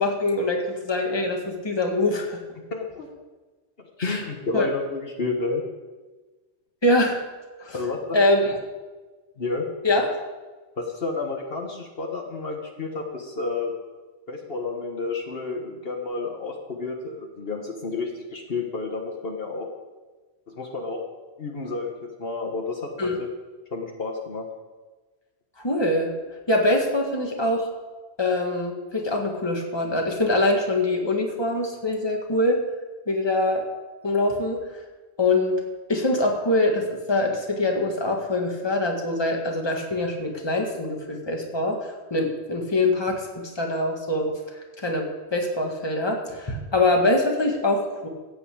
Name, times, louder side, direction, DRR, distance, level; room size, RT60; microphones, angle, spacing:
voice 1, 0.0-2.4 4.0-4.2 4.5-4.7 6.8-7.2 7.6-7.8 8.1-8.6 9.8-10.2 23.0-23.2 25.6-26.1 26.5-27.7 28.2-32.6 33.1-33.7 34.0-34.8 35.2-35.6 35.9-44.3 44.8-48.1, left 2 dB, 25° left, 1 dB, 1.8 m, -24 dB
voice 2, 2.7-3.1 4.0-5.6 7.7-8.2 9.4-9.7 10.8-13.7 14.3-19.7 20.5-21.0 21.4-23.3 23.7-24.5, left 3 dB, 60° left, 1 dB, 1.6 m, -30 dB
14.5 x 5.6 x 8.5 m, 1.3 s
omnidirectional pair, 1.1 m